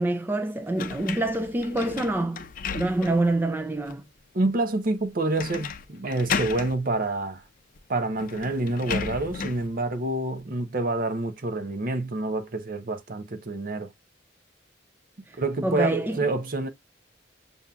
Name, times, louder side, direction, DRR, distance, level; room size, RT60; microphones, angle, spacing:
voice 1, 0.0-2.5 2.7-4.0 15.3-16.2, right 2 dB, 10° right, 0.3 m, -26 dB
sound 1, 0.8-3.3 3.9-4.0 5.4-5.8 6.1-6.7 7.8-7.9 8.2-9.7, left 5 dB, 50° left, 0.5 m, -33 dB
voice 2, 4.3-7.4 7.9-13.9 15.4-16.7, right 2 dB, 50° right, 0.7 m, -27 dB
7.1 x 2.7 x 2.3 m
head